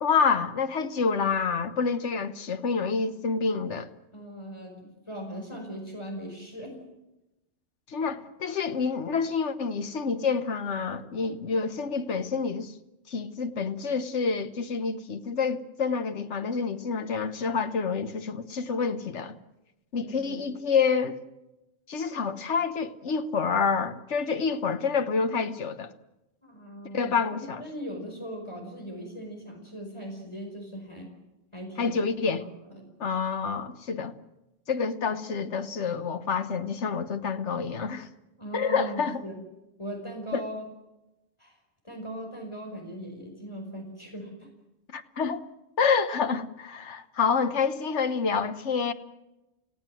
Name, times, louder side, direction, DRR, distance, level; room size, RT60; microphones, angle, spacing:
voice 1, 0.0-3.9 7.9-12.7 13.1-19.4 19.9-21.2 21.9-25.9 26.9-27.6 31.8-32.4 33.0-34.1 34.7-38.1 38.5-39.2 40.3-40.4 44.9-45.4 45.8-48.9, left 5 dB, 85° left, 1.5 m, -28 dB
voice 2, 4.1-6.8 19.9-20.4 26.4-31.1 31.5-32.0 32.4-32.9 38.4-39.4 39.8-40.7 41.4-41.6 41.8-44.5, equal, 25° left, 5.1 m, -39 dB
28.5 x 17.0 x 7.7 m
omnidirectional pair, 1.2 m